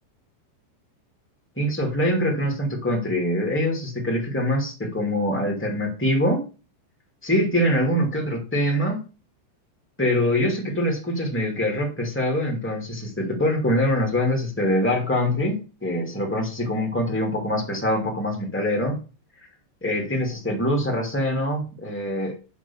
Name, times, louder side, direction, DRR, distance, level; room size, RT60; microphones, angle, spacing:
voice 1, 1.5-6.4 7.2-9.0 10.0-19.0 19.8-22.3, left 1 dB, 10° left, 1 dB, 0.7 m, -24 dB
10.5 x 3.8 x 7.1 m, 0.33 s
omnidirectional pair, 5.1 m